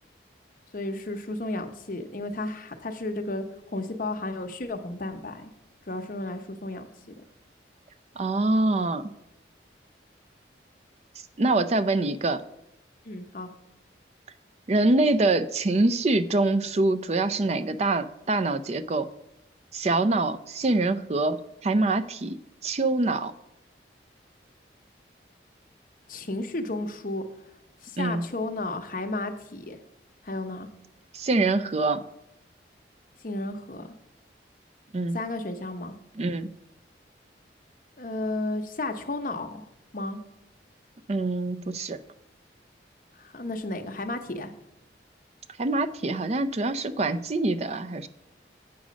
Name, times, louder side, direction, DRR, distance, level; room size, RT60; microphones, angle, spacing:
voice 1, 0.7-5.5 5.9-6.8 13.0-13.5 26.1-27.2 27.8-29.8 30.2-30.7 33.2-33.9 35.1-35.9 38.0-39.6 39.9-40.2 43.2-44.5, left 2 dB, 45° left, 4 dB, 0.8 m, -33 dB
voice 2, 8.2-9.0 11.4-12.4 14.7-19.1 19.7-22.4 22.6-23.3 28.0-28.3 31.1-32.0 34.9-35.2 36.2-36.5 41.1-42.0 45.6-48.1, right 2 dB, 35° right, 10 dB, 0.4 m, -25 dB
8.3 x 6.2 x 5.1 m, 0.85 s
head